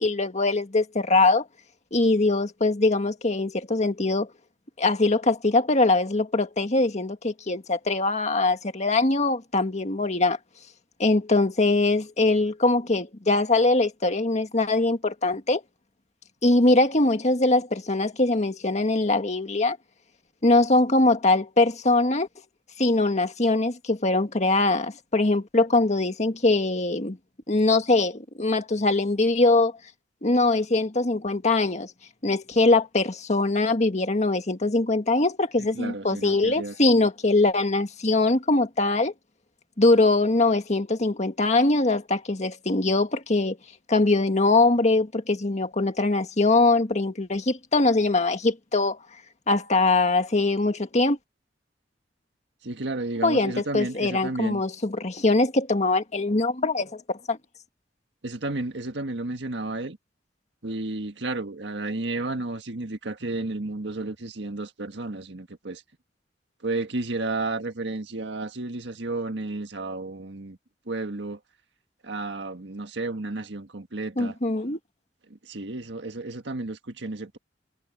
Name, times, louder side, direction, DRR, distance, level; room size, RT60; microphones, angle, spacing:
voice 1, 0.0-1.4 1.9-4.3 4.8-10.4 11.0-15.6 16.4-19.8 20.4-22.3 22.8-27.2 27.5-29.7 30.2-31.9 32.2-39.1 39.8-43.6 43.9-49.0 49.5-51.2 53.2-57.4 74.2-74.8, left 2 dB, 40° left, 1.8 m, -22 dB
voice 2, 35.6-36.7 52.6-54.6 58.2-60.0 60.6-65.8 66.6-70.6 70.9-71.4 72.0-74.4 75.3-77.4, right 2 dB, 70° right, 1.8 m, -32 dB
head